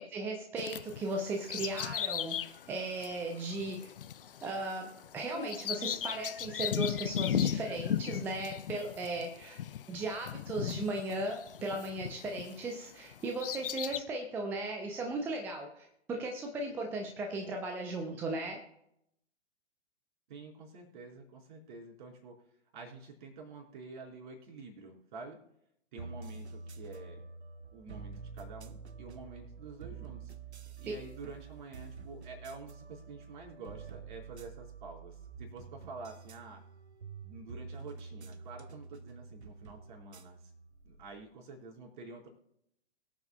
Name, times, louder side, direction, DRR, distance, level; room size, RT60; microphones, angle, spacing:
voice 1, 0.1-3.9 4.4-4.9 5.1-9.6 9.9-18.6, right 2 dB, 5° right, 3 dB, 0.5 m, -37 dB
Bird vocalization bird call bird song, 0.6-12.7 13.1-14.0, left 10 dB, 50° left, 0.6 m, -37 dB
voice 2, 20.3-22.3 22.7-25.4 25.9-27.2 27.7-30.3 30.8-36.6 37.2-40.5 40.8-42.3, right 3 dB, 45° right, 0 dB, 4.1 m, -48 dB
sound 1, 26.0-41.2, right 5 dB, 65° right, 0.9 m, -48 dB
23.5 x 8.0 x 2.2 m, 0.76 s
figure-of-eight pair, 115°, 35 cm